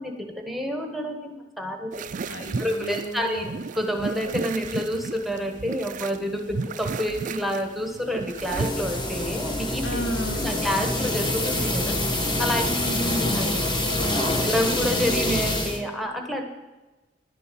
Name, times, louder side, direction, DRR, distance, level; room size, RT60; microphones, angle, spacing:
voice 1, 0.0-1.9 2.4-3.5 3.7-10.0 10.3-12.0 12.4-12.6 13.3-13.6 14.4-16.4, equal, ahead, 3 dB, 1.3 m, -28 dB
sound 1, 1.9-8.7, right 4 dB, 45° right, 0.4 m, -33 dB
voice 2, 2.3-3.5 9.8-10.5 12.7-13.5 14.0-14.5, equal, 75° left, 2 dB, 2.2 m, -33 dB
sound 2, 8.3-15.8, left 1 dB, 25° left, 1.5 m, -26 dB
11.0 x 6.9 x 8.5 m, 1.1 s
head